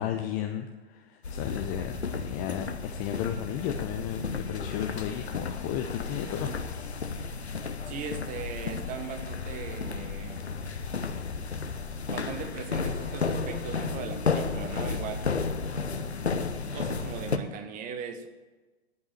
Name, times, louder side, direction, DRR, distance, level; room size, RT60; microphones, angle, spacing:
voice 1, 0.0-6.6, left 10 dB, 15° left, 5 dB, 0.3 m, -34 dB
sound 1, 1.2-17.4, left 4 dB, 80° left, 0.8 m, -33 dB
voice 2, 7.9-10.5 12.1-15.3 16.7-18.3, right 6 dB, 25° right, 7 dB, 1.0 m, -39 dB
10.5 x 5.4 x 8.6 m, 1.2 s
figure-of-eight pair, 105°, 32 cm